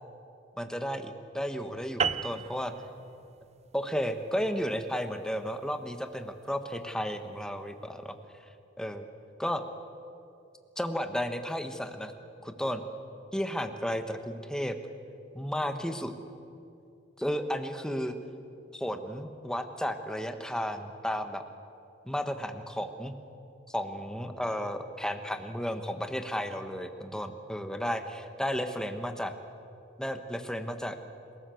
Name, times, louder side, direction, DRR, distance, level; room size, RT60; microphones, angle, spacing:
voice 1, 0.6-2.7 3.7-8.1 8.8-9.1 9.4-9.6 10.8-12.1 12.4-12.8 13.3-14.8 15.3-16.1 17.2-18.1 18.7-21.4 22.0-23.1 23.7-29.3 30.0-31.0, equal, 5° left, 7 dB, 1.3 m, -33 dB
sound 1, 2.0-6.7, right 6 dB, 35° right, 0.5 m, -36 dB
28.0 x 17.5 x 7.9 m, 2.6 s
head